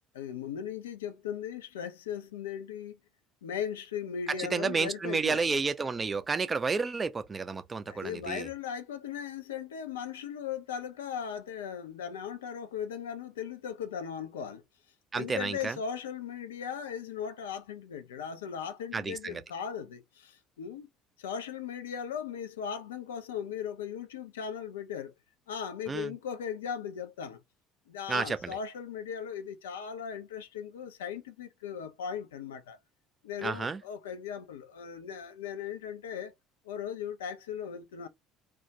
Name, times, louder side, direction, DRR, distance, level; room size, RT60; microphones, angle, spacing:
voice 1, 0.1-3.0 3.4-5.5 7.9-14.6 15.1-20.9 21.2-25.1 25.5-27.4 27.9-32.8 33.2-36.3 36.6-38.1, left 8 dB, 75° left, 0.3 m, -38 dB
voice 2, 4.3-8.5 15.1-15.8 18.9-19.4 25.9-26.1 28.1-28.6 33.4-33.8, right 4 dB, 25° right, 0.4 m, -31 dB
2.2 x 2.0 x 2.7 m
figure-of-eight pair, 60°, 0 cm